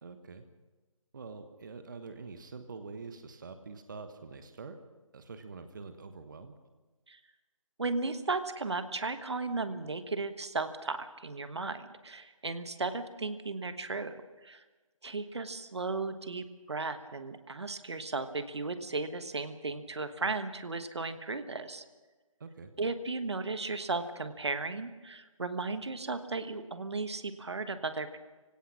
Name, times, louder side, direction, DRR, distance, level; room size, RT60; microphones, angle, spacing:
voice 1, 0.0-0.4 1.1-4.8 5.1-6.6 22.4-22.7, right 4 dB, 35° right, 8 dB, 1.3 m, -45 dB
voice 2, 7.8-14.6 15.0-21.8 22.8-28.2, right 3 dB, 55° right, 10 dB, 1.4 m, -35 dB
25.5 x 17.0 x 5.9 m, 1.2 s
figure-of-eight pair, 155°, 17 cm